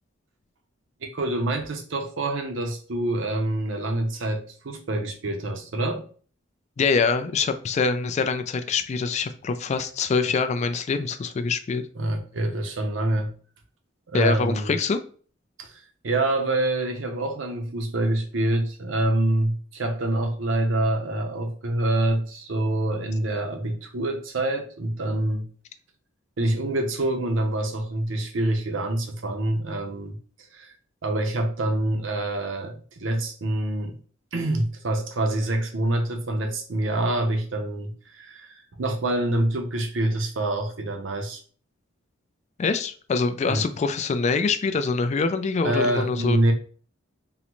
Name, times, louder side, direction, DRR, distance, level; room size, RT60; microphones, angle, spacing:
voice 1, 1.0-6.0 11.9-13.3 14.1-14.7 15.6-25.5 26.4-30.2 30.5-30.7 31.0-34.0 34.3-41.4 43.5-43.7 45.6-46.5, right 1 dB, 70° right, 0.7 m, -26 dB
voice 2, 6.8-11.9 14.1-15.0 42.6-46.4, left 4 dB, 35° left, 0.3 m, -24 dB
3.8 x 2.1 x 3.0 m
head